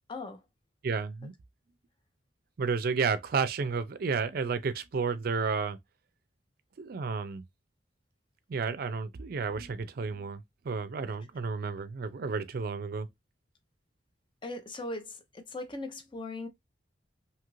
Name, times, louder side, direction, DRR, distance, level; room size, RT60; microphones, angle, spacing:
voice 1, 0.1-0.4 14.4-16.5, left 2 dB, 30° left, 0.6 m, -39 dB
voice 2, 0.8-1.3 2.6-5.8 6.8-7.4 8.5-13.1, right 5 dB, 55° right, 0.4 m, -31 dB
2.8 x 2.4 x 3.0 m
head